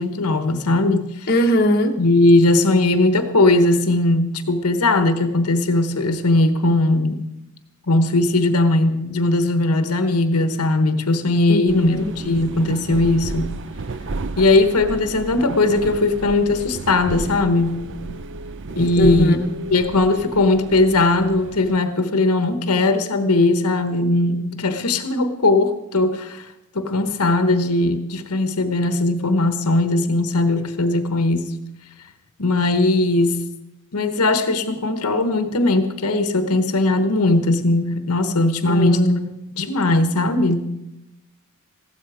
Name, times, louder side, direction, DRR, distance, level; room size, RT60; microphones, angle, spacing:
voice 1, 0.0-1.3 2.0-7.2 7.9-13.5 14.4-17.8 18.8-19.4 19.7-26.5 26.7-31.4 32.4-33.4 33.9-39.1 39.6-40.6, left 2 dB, 85° left, 9 dB, 1.1 m, -19 dB
voice 2, 1.3-2.0 11.5-12.1 19.0-19.5 38.7-39.2, left 1 dB, 45° left, 3 dB, 1.2 m, -20 dB
sound 1, 11.7-21.8, right 3 dB, 55° right, 0.6 m, -32 dB
15.5 x 12.5 x 4.9 m, 0.90 s
head